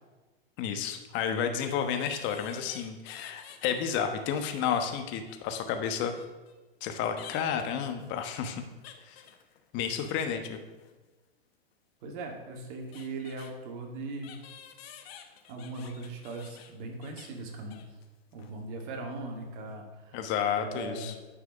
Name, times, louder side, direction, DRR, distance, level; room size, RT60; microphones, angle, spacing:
voice 1, 0.6-6.1 6.8-8.6 9.1-9.2 9.7-10.6 20.1-21.1, left 8 dB, 35° left, 7 dB, 1.2 m, -31 dB
sound 1, 1.1-1.2 2.0-3.9 4.2-6.5 7.2-10.3 10.5-11.0 12.2-12.3 12.6-13.5 14.2-18.1 18.3-18.5 18.8-19.0, left 9 dB, 70° left, 1.2 m, -51 dB
voice 2, 12.0-14.4 15.5-17.8 18.3-20.3 20.6-21.2, right 2 dB, 55° right, 2 dB, 2.2 m, -39 dB
9.9 x 4.8 x 6.3 m, 1.2 s
hypercardioid pair, 135°, 31 cm